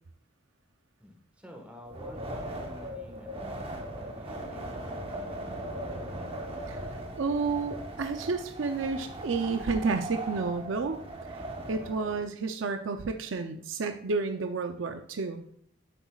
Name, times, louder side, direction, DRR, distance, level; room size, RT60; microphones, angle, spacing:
voice 1, 1.0-6.3, left 1 dB, 5° right, 2 dB, 1.4 m, -50 dB
Wind, 1.9-12.2, right 1 dB, 30° right, 1.0 m, -39 dB
sound 1, 4.4-14.6, left 1 dB, 70° left, 1.1 m, -54 dB
voice 2, 7.1-15.5, right 4 dB, 70° right, 6 dB, 0.6 m, -31 dB
9.9 x 8.1 x 2.4 m, 0.63 s
head